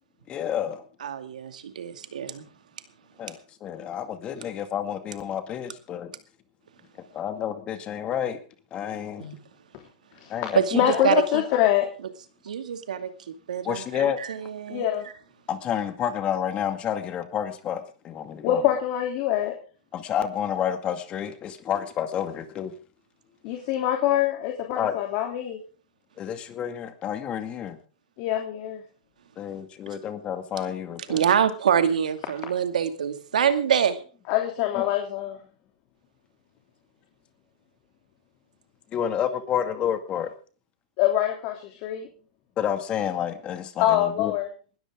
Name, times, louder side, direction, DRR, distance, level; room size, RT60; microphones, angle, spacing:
voice 1, 0.3-0.8 3.2-6.1 7.1-8.4 8.7-9.3 10.3-10.8 13.6-14.2 15.5-18.6 19.9-22.7 24.8-25.0 26.2-27.8 29.4-31.2 34.7-34.9 38.9-40.3 42.6-44.3, left 9 dB, 25° left, 8 dB, 2.2 m, -29 dB
voice 2, 1.0-2.4 9.2-9.4 10.5-11.4 12.4-13.1 13.5-14.9 31.1-34.0, right 8 dB, 90° right, 8 dB, 2.3 m, -25 dB
voice 3, 10.7-11.9 14.7-15.1 18.4-19.5 23.4-25.6 28.2-28.8 34.3-35.4 41.0-42.1 43.8-44.5, left 12 dB, 45° left, 3 dB, 3.1 m, -24 dB
20.0 x 13.5 x 3.7 m, 0.39 s
hypercardioid pair, 140°, 4 cm